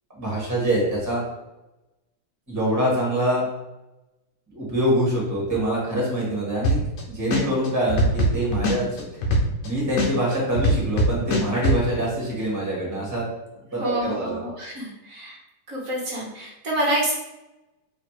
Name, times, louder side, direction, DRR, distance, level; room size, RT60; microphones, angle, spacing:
voice 1, 0.1-1.2 2.5-3.5 4.5-6.8 7.1-9.2 9.6-13.3 13.7-14.4, right 1 dB, 10° right, -5 dB, 1.3 m, -25 dB
sound 1, 6.6-7.0 7.3-9.7 10.0-11.8, equal, 70° left, 1.4 m, -20 dB
voice 2, 13.8-15.4 15.7-17.1, right 1 dB, 55° right, -3 dB, 1.0 m, -27 dB
3.3 x 3.2 x 4.8 m, 0.99 s
omnidirectional pair, 2.3 m